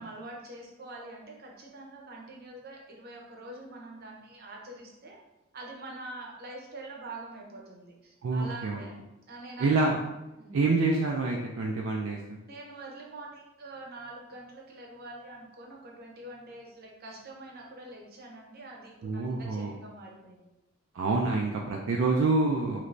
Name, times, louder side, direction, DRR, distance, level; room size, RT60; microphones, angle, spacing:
voice 1, 0.0-5.2 5.5-9.0 9.3-9.7 10.4-10.5 12.5-20.5, right 2 dB, 50° right, -1 dB, 0.7 m, -45 dB
voice 2, 8.2-8.8 9.6-10.0 10.5-12.4 19.0-19.7 20.9-22.8, right 3 dB, 70° right, -1 dB, 0.3 m, -27 dB
3.2 x 3.0 x 2.5 m, 0.97 s
head